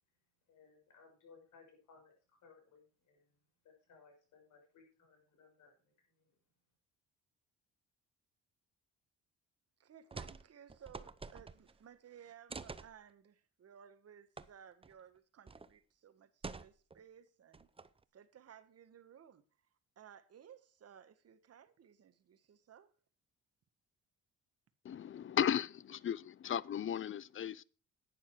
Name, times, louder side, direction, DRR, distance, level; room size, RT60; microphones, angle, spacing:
voice 1, 0.5-3.3 3.6-6.3, left 5 dB, 80° left, 6.3 m, -63 dB
voice 2, 9.8-17.7 18.1-19.4 20.0-22.9, right 9 dB, 55° right, 1.5 m, -58 dB
sound 1, 10.1-10.4 10.7-11.8 12.5-12.9 14.4-14.5 14.8-14.9 15.5-15.7 16.4-17.0 17.5-18.0, right 4 dB, 20° right, 0.7 m, -47 dB
voice 3, 24.8-27.6, left 9 dB, 40° left, 0.6 m, -35 dB
11.5 x 9.7 x 4.7 m
cardioid pair, 90°, 30 cm